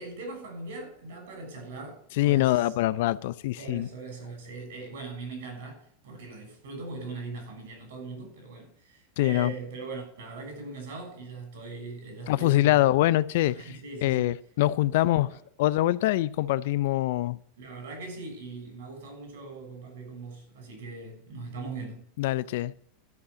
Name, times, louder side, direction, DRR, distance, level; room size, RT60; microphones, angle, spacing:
voice 1, 0.0-2.7 3.6-12.9 13.5-14.3 15.3-15.4 17.6-22.1, right 3 dB, 75° right, 6.4 m, -40 dB
voice 2, 2.2-3.9 9.2-9.5 12.3-13.7 14.0-17.4 22.2-22.7, left 15 dB, 65° left, 0.5 m, -24 dB
13.0 x 5.6 x 8.3 m
hypercardioid pair, 100°, 0 cm